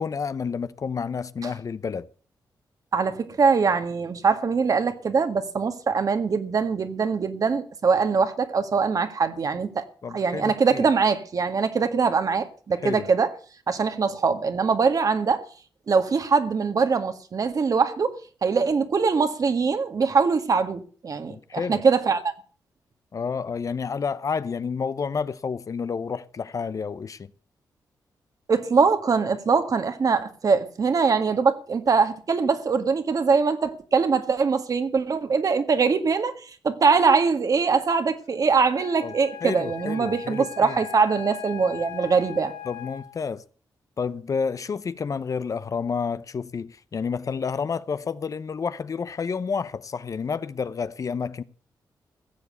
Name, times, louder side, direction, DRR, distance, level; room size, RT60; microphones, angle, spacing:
voice 1, 0.0-2.1 10.0-10.9 12.8-13.0 21.3-21.8 23.1-27.3 39.0-39.1 39.4-40.8 42.6-43.4 44.0-51.4, left 5 dB, 50° left, 0.8 m, -30 dB
voice 2, 2.9-9.9 10.1-13.3 13.7-15.4 15.9-18.2 18.4-22.3 28.5-42.5, right 5 dB, 50° right, 1.8 m, -22 dB
Wind instrument woodwind instrument, 38.7-43.3, left 13 dB, 90° left, 2.7 m, -39 dB
16.0 x 7.3 x 8.1 m
cardioid pair, 75°, 7 cm